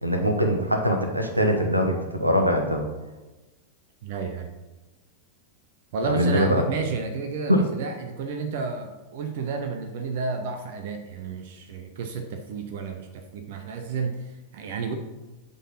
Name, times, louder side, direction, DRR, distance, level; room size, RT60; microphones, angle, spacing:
voice 1, 0.0-2.8 6.0-6.6 7.5-7.6, equal, 85° right, 4 dB, 1.0 m, -22 dB
voice 2, 4.0-4.5 5.9-14.9, right 4 dB, 50° right, 6 dB, 0.6 m, -31 dB
8.1 x 4.0 x 5.6 m, 1.1 s
figure-of-eight pair, 90°, 0 cm